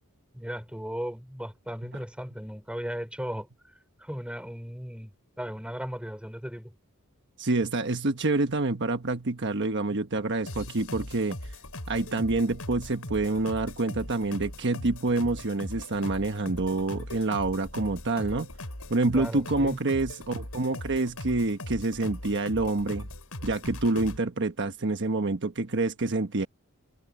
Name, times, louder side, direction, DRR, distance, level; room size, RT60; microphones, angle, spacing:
voice 1, 0.3-3.5 4.0-6.7 19.1-19.8, equal, 5° right, 4.1 m, -36 dB
voice 2, 7.4-11.5 11.9-18.5 18.9-23.1 23.4-26.5, right 2 dB, 55° right, 1.2 m, -27 dB
sound 1, 10.5-24.2, left 1 dB, 80° left, 5.3 m, -40 dB
head